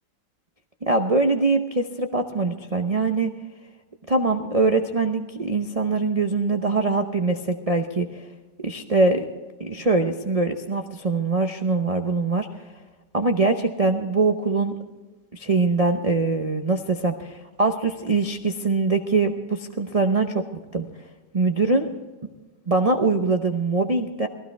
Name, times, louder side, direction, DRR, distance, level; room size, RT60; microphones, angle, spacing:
voice 1, 0.9-3.3 4.1-8.2 8.6-9.2 9.6-12.6 13.1-14.7 15.3-20.5 20.7-20.9 21.3-21.9 22.7-24.3, right 3 dB, 40° right, 4 dB, 0.5 m, -23 dB
19.0 x 15.5 x 3.4 m, 1.2 s
omnidirectional pair, 1.9 m